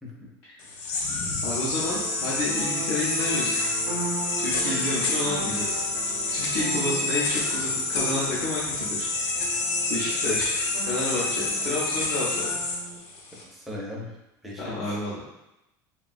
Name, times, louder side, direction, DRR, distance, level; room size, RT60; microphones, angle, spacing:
sound 1, 0.6-13.4, left 3 dB, 90° left, 0.5 m, -28 dB
voice 1, 1.4-3.6 4.4-5.8 6.3-9.1 9.9-10.5 10.9-12.5 14.6-15.3, left 1 dB, 50° left, -9 dB, 0.7 m, -30 dB
sound 2, 1.7-13.0, right 3 dB, 60° right, 0.4 m, -39 dB
voice 2, 6.2-6.7 13.3-14.2 14.4-14.8, left 1 dB, ahead, -4 dB, 0.4 m, -39 dB
3.0 x 2.2 x 2.5 m, 0.92 s
cardioid pair, 160°, 9 cm